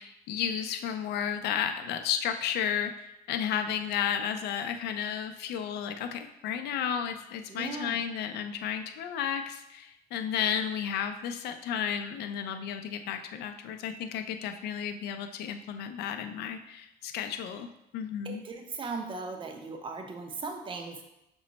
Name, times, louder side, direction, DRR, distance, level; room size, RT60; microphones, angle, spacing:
voice 1, 0.0-18.5, left 8 dB, 75° left, 7 dB, 0.5 m, -33 dB
voice 2, 7.5-8.0 18.2-21.0, right 4 dB, 30° right, 3 dB, 0.6 m, -38 dB
6.1 x 2.1 x 3.9 m, 0.86 s
cardioid pair, 110°, 17 cm